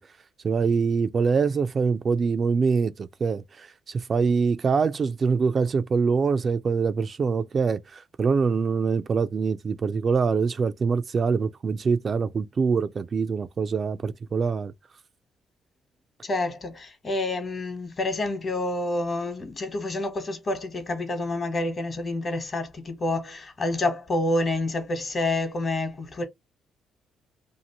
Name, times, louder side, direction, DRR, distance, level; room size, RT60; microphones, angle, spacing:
voice 1, 0.4-3.4 4.1-14.7, right 5 dB, 45° right, 0.3 m, -24 dB
voice 2, 16.2-26.2, left 2 dB, 40° left, 1.1 m, -28 dB
2.7 x 2.5 x 2.8 m
cardioid pair, 90°, 0 cm